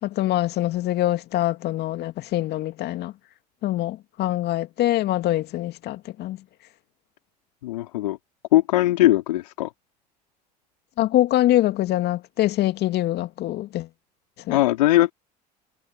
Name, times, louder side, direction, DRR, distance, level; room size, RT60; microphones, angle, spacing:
voice 1, 0.0-3.1 3.6-6.4 11.0-13.9 14.4-14.6, left 14 dB, 50° left, 2.3 m, -24 dB
voice 2, 7.6-8.2 8.5-9.7 14.5-15.1, left 16 dB, 75° left, 3.8 m, -20 dB
hypercardioid pair, 70°, 21 cm